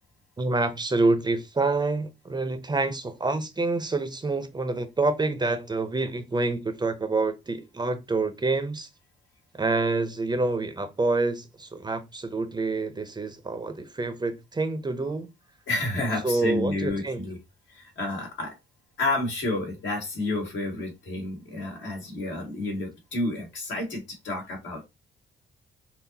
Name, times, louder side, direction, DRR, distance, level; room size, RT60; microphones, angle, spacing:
voice 1, 0.4-8.9 9.6-15.3 16.2-17.2, right 3 dB, 20° right, 0.6 m, -27 dB
voice 2, 15.7-17.4 17.7-18.6 19.0-24.8, left 2 dB, 70° left, 2.0 m, -30 dB
5.7 x 2.0 x 2.7 m
cardioid pair, 90°, 20 cm